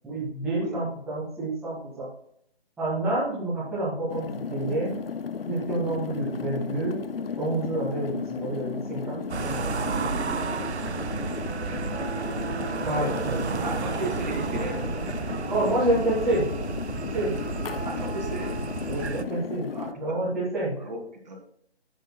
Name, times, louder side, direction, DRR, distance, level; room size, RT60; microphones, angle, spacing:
voice 1, 0.0-2.1 2.8-4.9 5.4-7.0 7.4-9.8 12.8-13.6 15.5-16.4 17.1-17.3 18.9-19.7 20.0-20.7, right 1 dB, ahead, -12 dB, 1.6 m, -28 dB
sound 1, 4.1-19.9, left 6 dB, 60° left, 0.7 m, -35 dB
sound 2, 9.3-19.2, right 5 dB, 80° right, 0.8 m, -32 dB
voice 2, 12.9-14.9 17.8-18.5 19.7-20.2 20.8-21.4, right 2 dB, 40° right, 1 dB, 2.8 m, -36 dB
11.5 x 9.1 x 2.3 m, 0.66 s
hypercardioid pair, 170°, 33 cm